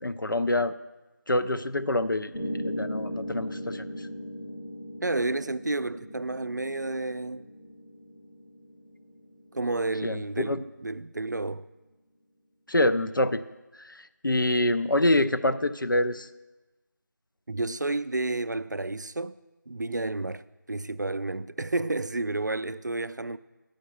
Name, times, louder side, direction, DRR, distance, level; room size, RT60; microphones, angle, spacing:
voice 1, 0.0-0.7 1.3-4.1 10.0-10.6 12.7-13.4 13.8-16.3, left 1 dB, 85° left, 0.6 m, -26 dB
Piano, 2.3-10.4, equal, 55° left, 1.9 m, -38 dB
voice 2, 5.0-7.5 9.5-11.7 17.5-19.4 19.7-23.4, right 2 dB, 60° right, 0.4 m, -31 dB
10.5 x 5.2 x 7.9 m
figure-of-eight pair, 175°, 11 cm